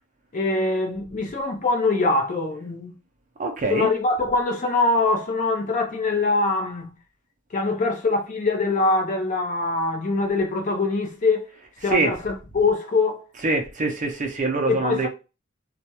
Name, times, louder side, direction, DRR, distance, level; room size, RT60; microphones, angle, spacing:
voice 1, 0.3-2.9 3.7-6.9 7.5-11.5 11.8-13.2 14.7-15.1, left 3 dB, 40° left, 0.5 m, -23 dB
voice 2, 3.4-3.9 11.8-12.2 13.3-15.1, right 3 dB, 40° right, 0.5 m, -24 dB
2.3 x 2.1 x 2.8 m
head